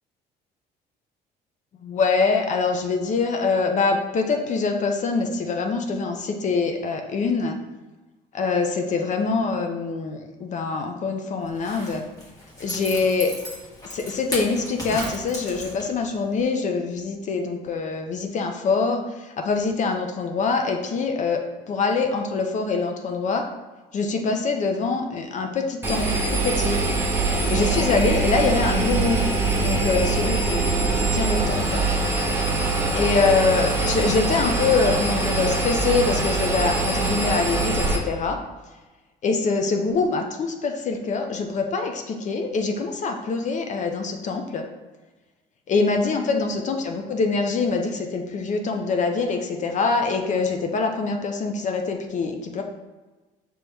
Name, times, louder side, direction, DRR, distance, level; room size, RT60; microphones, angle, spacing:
voice 1, 1.8-7.6 8.3-12.0 12.6-13.3 13.9-21.4 21.7-23.4 23.9-26.8 27.5-29.2 29.6-31.9 32.9-38.4 39.2-44.6 45.7-52.6, left 4 dB, 45° left, 4 dB, 0.6 m, -24 dB
Zipper (clothing), 11.5-16.1 16.4-16.5, equal, 20° left, 1.4 m, -35 dB
Engine, 25.8-38.0, right 3 dB, 15° right, 0.8 m, -23 dB
5.3 x 3.0 x 3.3 m, 1.2 s
cardioid pair, 110°, 17 cm